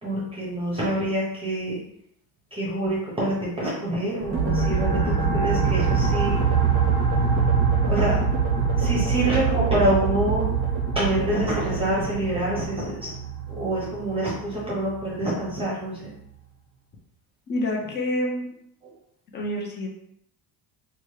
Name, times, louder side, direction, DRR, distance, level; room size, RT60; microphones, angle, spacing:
voice 1, 0.0-1.8 2.5-6.4 7.9-8.2 8.8-10.5 10.9-13.1 13.5-16.1, right 1 dB, 15° right, -6 dB, 0.8 m, -26 dB
sound 1, 4.2-15.5, right 4 dB, 5° left, 1.1 m, -26 dB
sound 2, 4.3-12.5, right 7 dB, 60° right, 0.5 m, -27 dB
voice 2, 17.5-18.5 19.3-19.9, left 1 dB, 25° left, 0 dB, 0.6 m, -27 dB
3.0 x 2.4 x 3.1 m, 0.72 s
cardioid pair, 145°, 39 cm